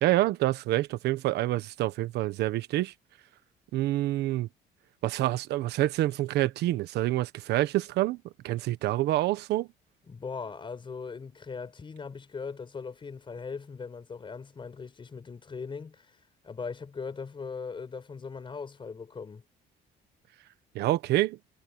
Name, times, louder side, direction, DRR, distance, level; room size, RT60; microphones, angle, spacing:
voice 1, 0.0-2.9 3.7-4.5 5.0-9.7 20.7-21.4, right 16 dB, 80° right, 1.3 m, -27 dB
voice 2, 10.1-16.1 16.4-19.4, left 5 dB, 30° left, 5.1 m, -39 dB
cardioid pair, 110°, 17 cm